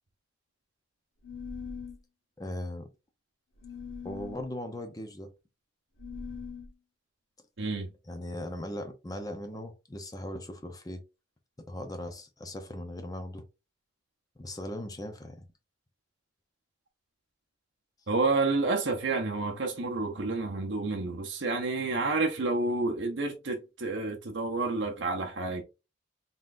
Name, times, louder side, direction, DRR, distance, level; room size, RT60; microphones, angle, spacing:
sound 1, 1.2-2.0 3.6-4.4 6.0-6.7, left 5 dB, 75° left, 1.2 m, -41 dB
voice 1, 2.4-2.9 4.0-5.3 8.1-11.0 11.7-13.5 14.4-15.5, left 1 dB, 20° left, 0.7 m, -38 dB
voice 2, 7.6-7.9 18.1-25.6, right 3 dB, 70° right, 0.8 m, -29 dB
3.9 x 3.8 x 2.5 m
head